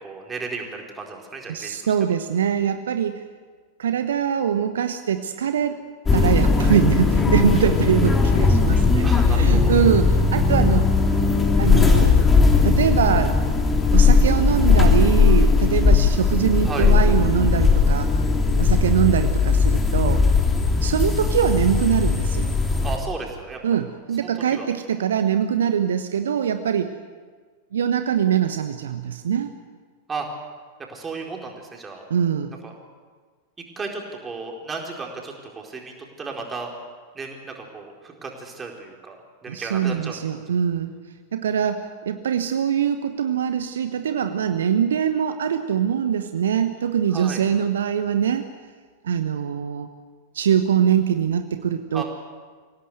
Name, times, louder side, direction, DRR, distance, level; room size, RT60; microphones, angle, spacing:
voice 1, 0.0-1.9 9.0-9.7 16.6-16.9 22.8-23.6 24.2-24.7 30.1-30.3 30.9-32.0 32.6-32.7 33.8-36.7 37.1-39.1 39.4-40.2 47.1-47.4 51.9-52.0, right 4 dB, 15° right, 1 dB, 4.4 m, -34 dB
voice 2, 1.5-3.2 3.8-5.8 6.1-11.2 11.6-12.2 12.6-13.4 13.9-18.1 18.6-20.2 20.8-22.5 23.6-26.9 27.7-29.5 32.1-32.5 39.5-40.9 41.3-48.5 49.0-49.9 50.3-52.0, right 8 dB, 65° right, 8 dB, 1.1 m, -23 dB
sound 1, 6.1-23.0, left 4 dB, 15° left, 3.0 m, -18 dB
26.0 x 17.0 x 8.0 m, 1.5 s
figure-of-eight pair, 90°, 0 cm